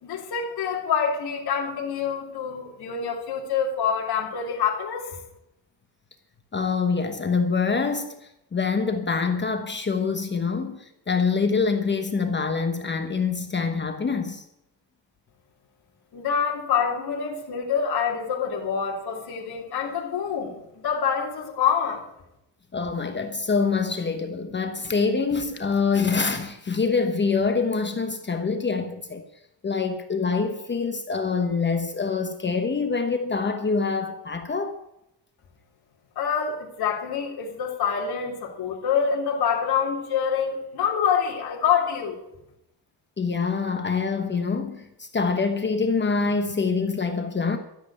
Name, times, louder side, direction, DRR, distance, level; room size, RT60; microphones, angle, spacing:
voice 1, 0.0-5.1 16.1-22.0 36.1-42.2, left 7 dB, 60° left, 3.4 m, -26 dB
voice 2, 6.5-8.2 8.5-14.4 22.7-29.2 29.6-34.8 43.2-47.6, left 4 dB, 25° left, 1.1 m, -25 dB
13.5 x 8.0 x 8.7 m
cardioid pair, 135°, 43 cm